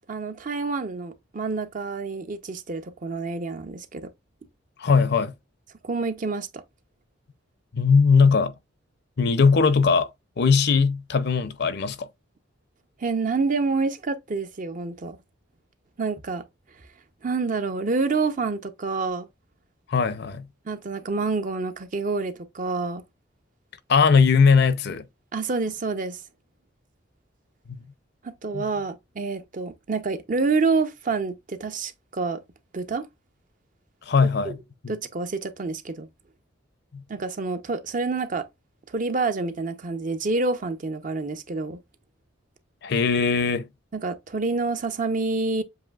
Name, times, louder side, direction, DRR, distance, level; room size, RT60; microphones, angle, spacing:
voice 1, 0.1-4.1 5.8-6.6 13.0-15.2 16.0-16.4 17.2-19.3 20.7-23.0 25.3-26.2 28.2-32.4 32.7-33.1 34.2-34.5 34.9-36.1 37.1-38.5 38.9-41.8 43.9-45.6, right 3 dB, 45° right, 0.6 m, -28 dB
voice 2, 4.8-5.3 7.7-8.5 9.2-10.1 10.4-12.1 19.9-20.5 23.9-25.0 28.5-28.7 34.1-34.6 36.9-37.0 42.8-43.7, left 5 dB, 60° left, 0.6 m, -19 dB
7.5 x 2.6 x 2.3 m
head